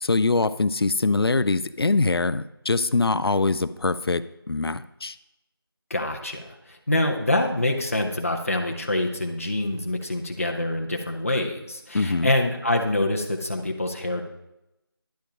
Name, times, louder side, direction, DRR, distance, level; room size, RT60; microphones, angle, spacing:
voice 1, 0.0-5.2 11.9-12.3, left 3 dB, 70° left, 15 dB, 0.5 m, -23 dB
voice 2, 5.9-14.3, left 1 dB, 35° left, 3 dB, 0.7 m, -26 dB
10.5 x 5.2 x 5.1 m, 0.91 s
figure-of-eight pair, 175°, 13 cm